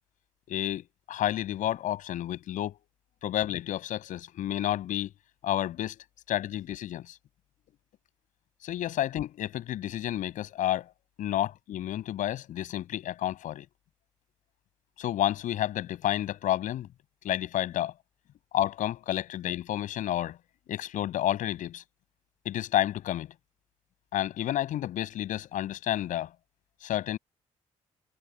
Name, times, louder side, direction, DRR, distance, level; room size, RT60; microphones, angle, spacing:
voice 1, 0.5-2.8 3.2-5.1 5.4-6.0 6.3-7.2 8.6-10.9 11.2-13.7 15.0-16.9 17.2-17.9 18.5-20.4 20.7-21.8 22.4-23.3 24.1-26.3 26.8-27.2, left 12 dB, 75° left, 7.3 m, -30 dB
supercardioid pair, 65°, 13 cm